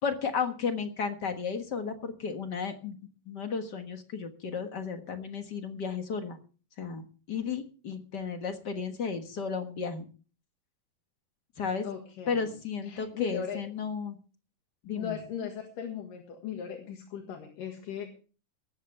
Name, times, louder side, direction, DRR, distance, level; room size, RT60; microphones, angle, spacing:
voice 1, 0.0-2.9 3.3-6.4 6.8-10.0 11.6-11.8 12.3-14.2 14.8-15.2, left 6 dB, 45° left, 6 dB, 1.4 m, -33 dB
voice 2, 11.8-12.6 12.8-13.6 14.9-18.1, left 8 dB, 80° left, 3 dB, 3.4 m, -38 dB
18.5 x 14.5 x 3.4 m, 0.37 s
omnidirectional pair, 3.8 m